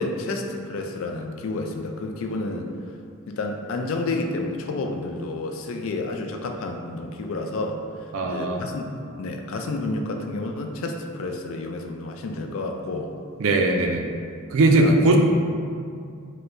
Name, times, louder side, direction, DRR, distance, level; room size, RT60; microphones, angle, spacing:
voice 1, 0.0-2.7 3.3-7.8 8.2-13.1 14.7-15.2, left 2 dB, 65° left, 4 dB, 0.3 m, -30 dB
voice 2, 8.1-8.6 13.4-14.1 14.5-15.2, right 2 dB, 70° right, 3 dB, 0.4 m, -19 dB
4.3 x 2.1 x 2.5 m, 2.3 s
head